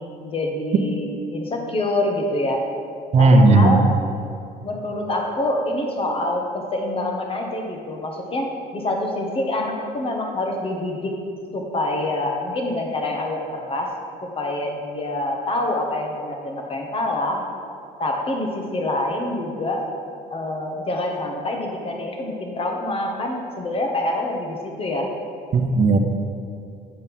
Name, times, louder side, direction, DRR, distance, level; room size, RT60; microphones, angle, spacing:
voice 1, 0.0-2.6 3.2-3.8 4.6-8.5 8.7-11.1 11.5-13.9 14.4-17.4 18.0-19.9 20.3-25.1, left 1 dB, 35° left, 1 dB, 1.4 m, -26 dB
voice 2, 3.1-3.8 25.5-26.0, right 3 dB, 40° right, 5 dB, 0.8 m, -14 dB
8.1 x 5.3 x 5.4 m, 2.4 s
cardioid pair, 110°, 17 cm